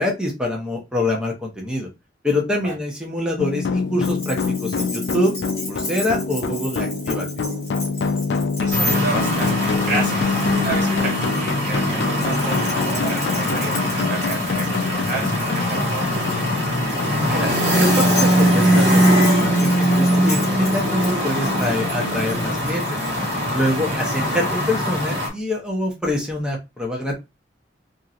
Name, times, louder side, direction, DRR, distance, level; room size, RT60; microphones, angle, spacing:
voice 1, 0.0-1.9 2.2-5.4 5.7-7.3 17.3-17.5 17.8-23.0 23.5-27.2, left 1 dB, 5° right, 0.7 m, -25 dB
sound 1, 3.4-22.6, left 4 dB, 75° left, 0.4 m, -26 dB
Keys jangling, 4.0-11.4 12.1-23.1, left 2 dB, 15° left, 1.0 m, -35 dB
voice 2, 8.6-16.5 23.9-24.0, right 3 dB, 45° right, 1.4 m, -30 dB
sound 2, 8.7-25.3, equal, 75° right, 1.2 m, -21 dB
3.0 x 2.6 x 2.5 m
head